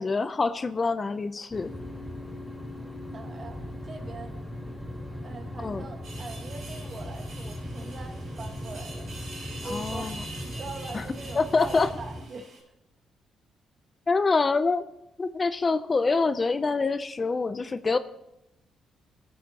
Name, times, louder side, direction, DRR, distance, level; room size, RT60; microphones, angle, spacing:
voice 1, 0.0-1.7 5.6-5.9 9.6-10.2 10.9-11.0 11.4-11.9 14.1-14.8 15.2-18.0, left 4 dB, 30° left, 12 dB, 0.4 m, -26 dB
sound 1, 1.5-12.2, left 1 dB, 5° left, 3.5 m, -38 dB
voice 2, 3.1-4.4 5.2-9.1 9.6-12.5, right 3 dB, 45° right, 5 dB, 1.4 m, -42 dB
sound 2, 6.0-12.6, right 2 dB, 65° right, 4.6 m, -45 dB
15.5 x 8.5 x 2.9 m, 0.87 s
cardioid pair, 90°, 0 cm